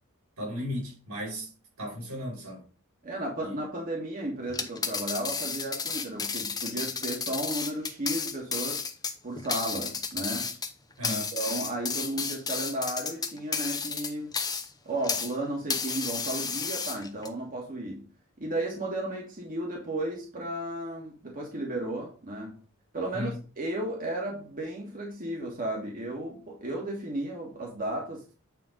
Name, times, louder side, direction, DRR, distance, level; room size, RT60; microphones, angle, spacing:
voice 1, 0.4-1.5 1.8-2.6 3.4-3.6 11.0-11.4 23.1-23.4, equal, 85° right, 4.4 m, -35 dB
voice 2, 3.0-8.8 9.2-10.5 11.0-14.3 14.9-18.0 18.4-22.6 22.9-23.3 23.6-28.2, right 1 dB, 40° right, 1.9 m, -34 dB
sound 1, 4.5-15.4 15.7-17.3, left 5 dB, 20° left, 0.7 m, -32 dB
9.2 x 3.5 x 5.2 m
head